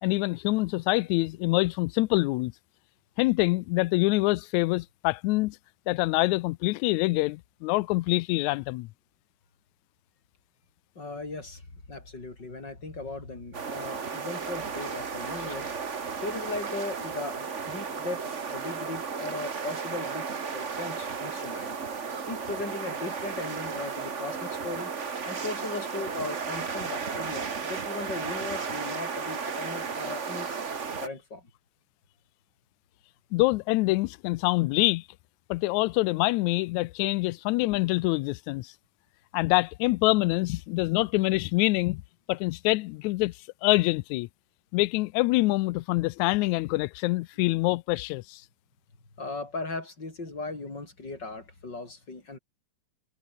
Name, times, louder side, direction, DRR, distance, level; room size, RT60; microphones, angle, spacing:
voice 1, 0.0-2.5 3.2-5.6 5.9-8.9 33.3-35.1 35.5-38.7 39.3-42.0 42.3-43.3 43.6-44.3 44.7-48.4, left 21 dB, 90° left, 1.6 m, -25 dB
voice 2, 11.0-15.7 16.2-21.8 22.3-24.9 25.2-30.6 31.0-31.5 49.2-52.4, left 3 dB, 30° left, 6.3 m, -38 dB
sound 1, 13.5-31.1, right 5 dB, 50° right, 0.8 m, -34 dB
omnidirectional pair, 3.9 m